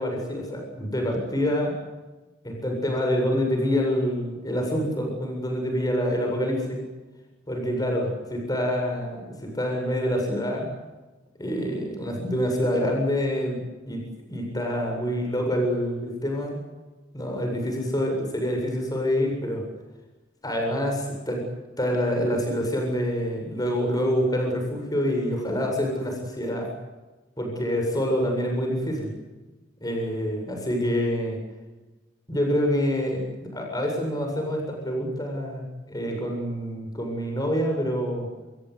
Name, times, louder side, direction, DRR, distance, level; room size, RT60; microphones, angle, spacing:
voice 1, 0.0-1.8 2.4-6.8 7.5-10.7 11.4-14.0 14.3-16.6 17.1-19.6 20.4-21.4 21.8-26.7 27.4-29.1 29.8-31.4 32.3-38.3, equal, 20° left, 2 dB, 7.8 m, -26 dB
26.0 x 22.0 x 8.2 m, 1.1 s
head